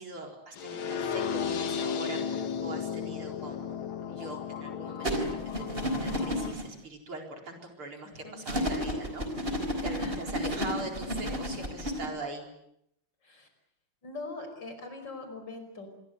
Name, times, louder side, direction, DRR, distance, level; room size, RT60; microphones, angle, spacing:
voice 1, 0.0-12.5, right 2 dB, 90° right, 2 dB, 5.3 m, -42 dB
sound 1, 0.6-6.5, left 7 dB, 75° left, 2.1 m, -34 dB
sound 2, 5.0-6.6 8.5-12.1, equal, 25° right, 4.0 m, -31 dB
voice 2, 8.0-8.4 10.0-10.3 10.6-10.8 13.2-13.5 14.0-15.9, left 3 dB, 55° left, 7 dB, 5.9 m, -42 dB
27.0 x 22.0 x 7.9 m, 0.77 s
omnidirectional pair, 2.3 m